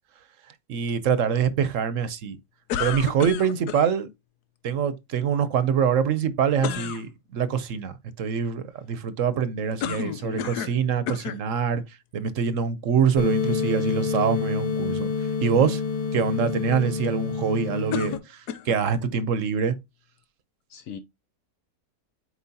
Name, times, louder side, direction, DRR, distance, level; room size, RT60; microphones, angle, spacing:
voice 1, 0.7-2.4 2.8-4.1 4.6-11.8 12.1-15.1 15.4-15.8 16.1-19.7, right 7 dB, 60° right, 1.1 m, -25 dB
sound 1, 2.7-3.9 6.6-7.0 9.8-10.8 11.1-11.4 12.2-12.3 17.9-18.8, left 9 dB, 80° left, 1.2 m, -31 dB
voice 2, 10.0-10.5 20.7-21.0, left 7 dB, 60° left, 1.1 m, -37 dB
sound 2, 13.2-18.2, left 5 dB, 30° left, 0.8 m, -27 dB
8.3 x 4.6 x 2.8 m
omnidirectional pair, 1.7 m